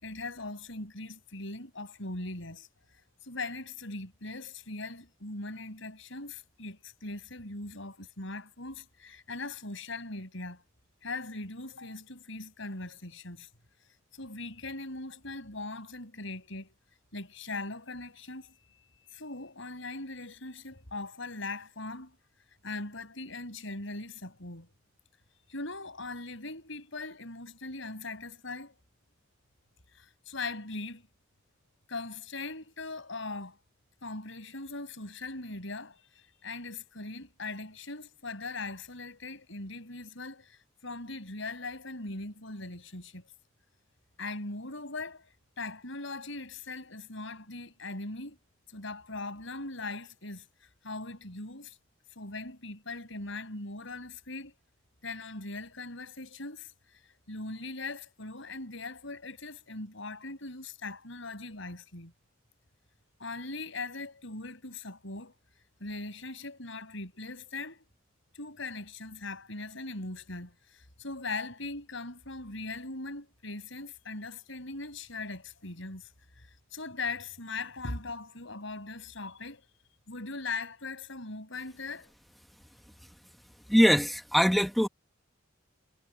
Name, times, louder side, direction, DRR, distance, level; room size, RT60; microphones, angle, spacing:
voice 1, 0.0-2.7 3.2-10.6 11.0-13.5 14.1-16.7 17.1-18.5 19.1-22.2 22.6-24.7 25.5-28.7 29.9-31.1 31.9-33.6 34.0-43.3 44.2-48.4 48.7-51.8 52.1-54.5 55.0-56.7 57.3-62.1 63.2-65.4 65.8-67.8 68.3-76.1 76.4-79.7 80.1-82.1, left 3 dB, 70° left, 6.4 m, -40 dB
voice 2, 83.7-84.9, equal, ahead, 1.4 m, -22 dB
head